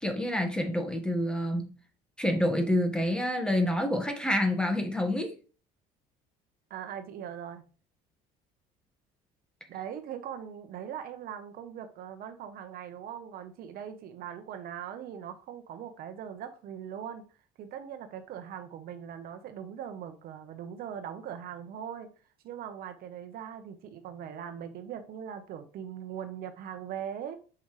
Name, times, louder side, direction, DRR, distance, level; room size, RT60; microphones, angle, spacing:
voice 1, 0.0-1.7 2.2-5.3, left 1 dB, 5° left, 1.4 m, -28 dB
voice 2, 6.7-7.7 9.7-17.3 17.6-22.1 22.4-27.4, right 9 dB, 65° right, 1.0 m, -40 dB
7.1 x 5.1 x 3.2 m
cardioid pair, 110°, 17 cm